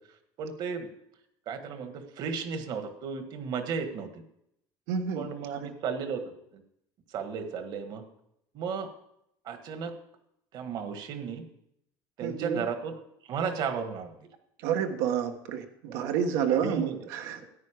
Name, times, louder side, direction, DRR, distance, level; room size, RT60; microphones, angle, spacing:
voice 1, 0.4-0.9 1.5-4.2 5.1-6.2 6.5-6.6 7.1-8.0 8.5-8.9 9.4-9.9 10.5-11.4 12.2-12.9 13.3-14.1 15.9-16.1 16.5-17.0, right 6 dB, 50° right, 8 dB, 1.5 m, -34 dB
voice 2, 4.9-5.7 12.2-12.6 14.6-17.5, right 8 dB, 85° right, 5 dB, 1.5 m, -30 dB
14.0 x 9.5 x 5.0 m, 0.78 s
cardioid pair, 145°, 9 cm